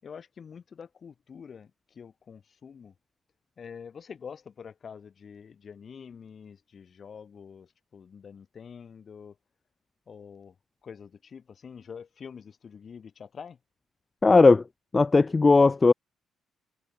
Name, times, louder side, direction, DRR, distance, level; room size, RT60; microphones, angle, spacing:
voice 1, 0.0-2.9 3.6-9.3 10.1-10.5 10.8-13.6, left 6 dB, 45° left, 4.8 m, -46 dB
voice 2, 14.2-14.6 14.9-15.9, left 3 dB, 25° left, 0.3 m, -17 dB
cardioid pair, 90°, 0 cm